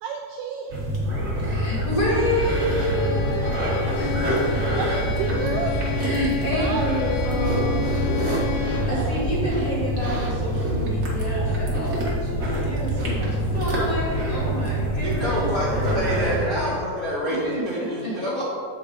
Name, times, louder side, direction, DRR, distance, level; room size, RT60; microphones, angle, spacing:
voice 1, 0.0-0.7 1.5-1.7 4.7-5.8 6.5-6.9, right 5 dB, 85° right, 2 dB, 1.6 m, -31 dB
sound 1, 0.7-16.4, right 1 dB, 60° right, 0.8 m, -25 dB
voice 2, 1.4-4.8 6.0-7.8 8.9-13.3 13.5-16.7 17.2-18.1, equal, 35° left, -7 dB, 1.5 m, -29 dB
Bowed string instrument, 2.1-9.1, left 7 dB, 90° left, 2.4 m, -32 dB
voice 3, 15.0-18.4, equal, 75° left, -9 dB, 0.8 m, -27 dB
7.6 x 4.5 x 5.3 m, 2.4 s
omnidirectional pair, 3.7 m